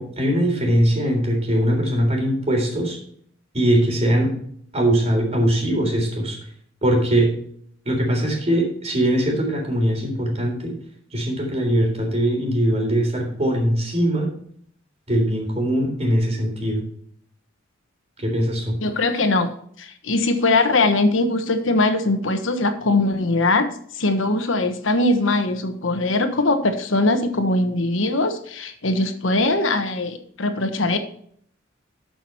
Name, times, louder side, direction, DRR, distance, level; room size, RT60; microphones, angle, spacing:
voice 1, 0.0-3.0 3.5-4.3 4.7-6.4 6.8-7.3 7.9-10.8 11.1-14.3 15.1-16.8 18.2-18.7, right 1 dB, 35° right, 1 dB, 3.6 m, -21 dB
voice 2, 18.8-19.5 19.8-23.7 23.9-31.0, left 2 dB, 75° left, 7 dB, 1.2 m, -21 dB
13.0 x 6.0 x 4.5 m, 0.62 s
head